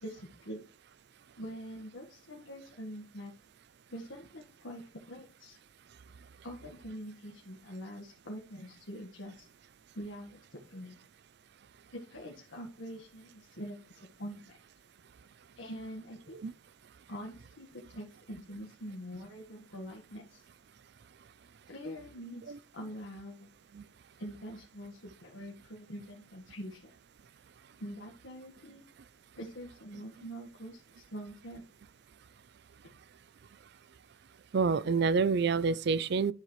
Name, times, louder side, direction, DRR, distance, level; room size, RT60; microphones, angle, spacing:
voice 1, 0.0-0.6 1.4-3.3 3.9-5.6 6.4-9.5 9.9-11.0 11.9-14.6 15.6-16.4 17.1-20.4 21.7-23.5 24.2-26.9 27.8-28.8 29.4-31.6, equal, 70° left, 1.6 m, -44 dB
voice 2, 34.5-36.3, right 5 dB, 55° right, 0.4 m, -27 dB
10.5 x 6.5 x 3.2 m
head